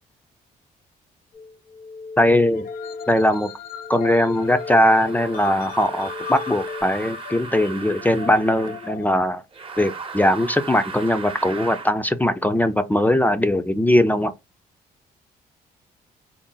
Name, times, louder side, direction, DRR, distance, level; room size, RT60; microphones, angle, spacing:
sound 1, 1.3-6.8, left 3 dB, 80° left, 1.1 m, -36 dB
voice 1, 2.2-2.7 3.1-3.5 3.9-9.4 9.8-14.3, left 1 dB, 10° left, 0.4 m, -20 dB
sound 2, 2.5-9.1, left 9 dB, 60° left, 0.5 m, -38 dB
sound 3, 4.3-9.0 9.5-11.9, right 5 dB, 35° right, 0.8 m, -37 dB
3.9 x 2.0 x 3.8 m
cardioid pair, 85°, 16 cm